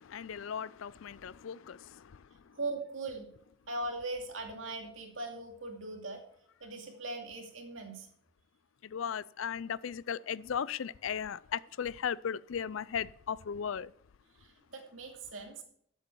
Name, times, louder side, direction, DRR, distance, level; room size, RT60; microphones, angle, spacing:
voice 1, 0.0-2.6 8.8-13.9, left 7 dB, 80° left, 0.4 m, -37 dB
voice 2, 2.6-3.3 3.7-6.2 6.6-8.1 14.4-15.6, right 2 dB, 75° right, 2.4 m, -40 dB
13.0 x 8.1 x 4.6 m
head